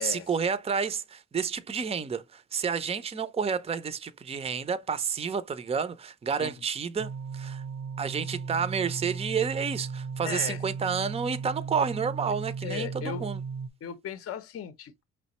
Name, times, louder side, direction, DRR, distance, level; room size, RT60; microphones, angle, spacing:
voice 1, 0.0-7.6 8.0-13.4, right 6 dB, 20° right, 0.5 m, -30 dB
sound 1, 7.0-13.7, right 5 dB, 60° right, 0.6 m, -36 dB
voice 2, 10.3-10.6 12.6-13.2 13.8-15.0, left 9 dB, 50° left, 0.6 m, -36 dB
5.0 x 3.2 x 2.9 m
cardioid pair, 90°, 30 cm